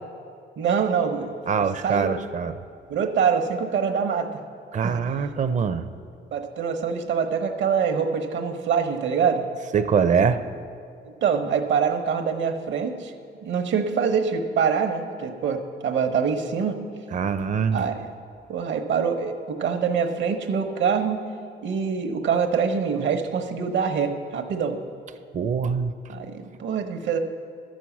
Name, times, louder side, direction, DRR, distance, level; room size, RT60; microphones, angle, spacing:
voice 1, 0.6-2.1 2.9-4.4 4.8-4.9 6.3-9.4 11.2-13.1 13.4-16.8 17.7-18.1 18.5-21.2 21.6-24.8 26.1-27.2, right 6 dB, 70° right, 6 dB, 1.1 m, -25 dB
voice 2, 1.5-2.5 4.7-5.9 9.7-10.4 17.1-17.8 25.3-25.9, right 6 dB, 40° right, 9 dB, 0.5 m, -23 dB
12.0 x 6.3 x 7.2 m, 2.4 s
cardioid pair, 90°, 20 cm